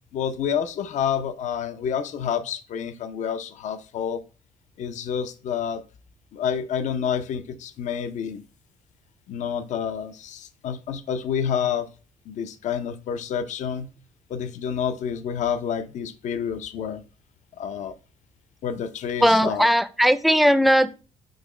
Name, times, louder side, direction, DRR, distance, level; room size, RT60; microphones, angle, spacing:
voice 1, 0.1-4.2 4.8-5.8 6.3-8.4 9.3-11.9 12.3-13.9 14.3-17.0 17.6-18.0 18.6-19.7, left 8 dB, 65° left, 11 dB, 0.6 m, -28 dB
voice 2, 19.2-21.0, equal, ahead, 12 dB, 0.5 m, -18 dB
6.4 x 3.0 x 4.9 m, 0.35 s
cardioid pair, 95°, 13 cm